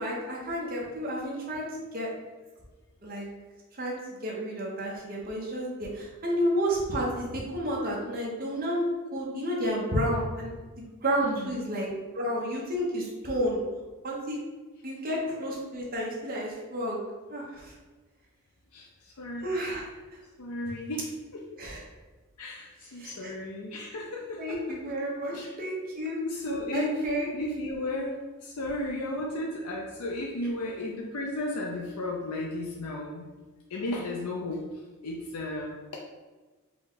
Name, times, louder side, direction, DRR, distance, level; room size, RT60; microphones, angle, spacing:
voice 1, 0.0-2.1 3.0-3.3 3.8-8.9 9.1-10.5 11.0-11.9 12.1-13.6 14.0-14.4 14.8-17.0 17.3-17.7 19.4-20.2 21.6-21.8 23.0-23.3 24.4-26.2 26.7-27.3, equal, 40° right, -3 dB, 1.0 m, -31 dB
voice 2, 11.2-11.6 18.7-19.6 20.4-21.4 22.4-24.6 25.3-25.5 26.2-27.0 27.3-33.3 33.7-34.6 35.0-36.0, left 1 dB, 85° left, -1 dB, 0.6 m, -34 dB
5.0 x 2.3 x 3.9 m, 1.3 s
head